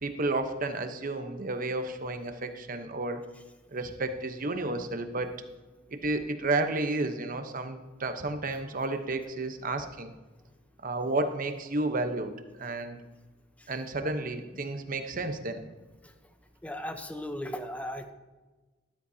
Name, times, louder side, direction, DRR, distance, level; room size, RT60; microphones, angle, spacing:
voice 1, 0.0-3.2 3.7-5.4 5.9-10.1 10.8-12.3 12.6-13.0 13.7-15.6, right 2 dB, 45° right, 7 dB, 1.0 m, -31 dB
voice 2, 16.6-18.1, equal, 5° left, 7 dB, 0.8 m, -37 dB
13.0 x 12.5 x 2.8 m, 1.2 s
head